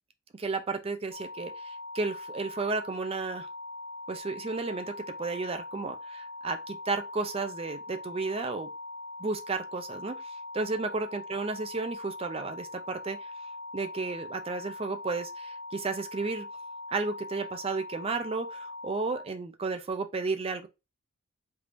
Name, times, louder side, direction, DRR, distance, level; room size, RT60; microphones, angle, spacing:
voice 1, 0.4-3.5 4.1-8.7 9.2-13.3 13.7-16.5 16.9-20.7, right 3 dB, 25° right, 0.4 m, -33 dB
sound 1, 1.1-19.3, left 2 dB, 55° left, 0.5 m, -42 dB
3.4 x 2.9 x 2.5 m
head